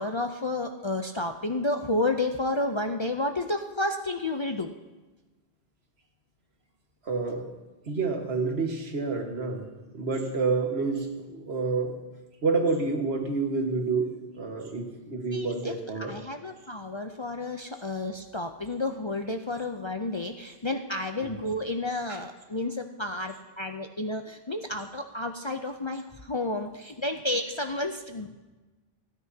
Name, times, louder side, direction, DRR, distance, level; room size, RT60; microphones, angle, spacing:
voice 1, 0.0-4.7 15.3-28.3, left 2 dB, 35° left, 4 dB, 0.5 m, -31 dB
voice 2, 7.0-7.4 7.8-9.6 9.9-11.9 12.4-16.2 21.2-21.3 22.1-22.2, right 4 dB, 75° right, 3 dB, 1.8 m, -28 dB
28.5 x 9.7 x 2.8 m, 1.2 s
omnidirectional pair, 1.1 m